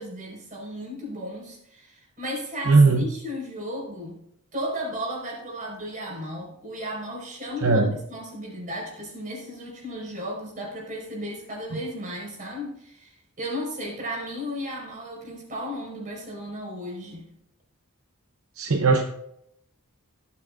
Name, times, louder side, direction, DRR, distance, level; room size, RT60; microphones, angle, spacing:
voice 1, 0.0-4.2 4.5-17.3, equal, 35° right, -3 dB, 4.9 m, -34 dB
voice 2, 2.7-3.0 7.6-8.0 18.6-19.0, right 3 dB, 65° right, 4 dB, 0.8 m, -18 dB
17.0 x 8.5 x 2.5 m, 0.75 s
head